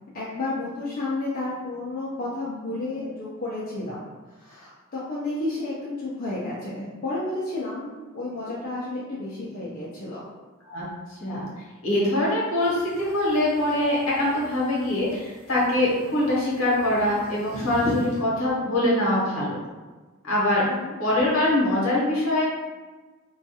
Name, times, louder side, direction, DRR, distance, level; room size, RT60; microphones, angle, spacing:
voice 1, 0.1-4.0 4.3-10.2 20.7-20.9, left 2 dB, 45° left, -8 dB, 0.5 m, -32 dB
voice 2, 11.8-19.6 20.2-20.6 21.0-22.4, left 1 dB, 65° left, -6 dB, 0.9 m, -23 dB
sound 1, 12.6-18.2, left 1 dB, 5° left, 1.0 m, -39 dB
2.4 x 2.3 x 2.7 m, 1.3 s
head